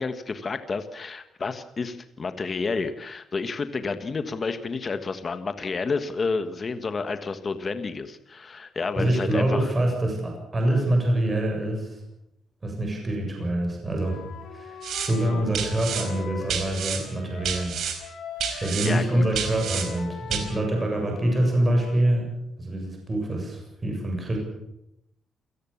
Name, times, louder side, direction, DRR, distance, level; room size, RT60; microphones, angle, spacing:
voice 1, 0.0-9.7 10.7-10.8 18.4-19.2, left 4 dB, 25° left, 9 dB, 1.4 m, -30 dB
voice 2, 8.9-12.0 12.6-14.2 14.5-17.8 18.6-22.3 22.6-24.4, right 1 dB, 20° right, 2 dB, 7.5 m, -25 dB
Wind instrument woodwind instrument, 13.9-17.7 18.0-22.0, left 4 dB, 75° left, 6.3 m, -40 dB
sound 1, 14.8-15.1 15.5-16.0 16.5-17.0 17.4-18.0 18.4-18.9 19.4-19.9 20.3-20.4, right 7 dB, 60° right, 4.8 m, -29 dB
28.0 x 18.0 x 7.2 m, 0.82 s
cardioid pair, 180°, 0 cm